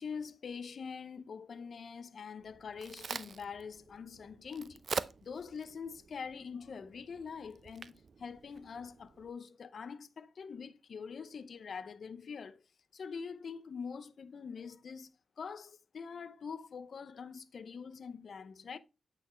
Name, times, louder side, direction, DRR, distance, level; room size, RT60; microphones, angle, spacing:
voice 1, 0.0-12.6 12.9-18.8, left 6 dB, 65° left, 0.5 m, -44 dB
Crack, 2.4-9.3, right 5 dB, 60° right, 0.4 m, -45 dB
8.7 x 4.1 x 3.1 m
cardioid pair, 60°, 0 cm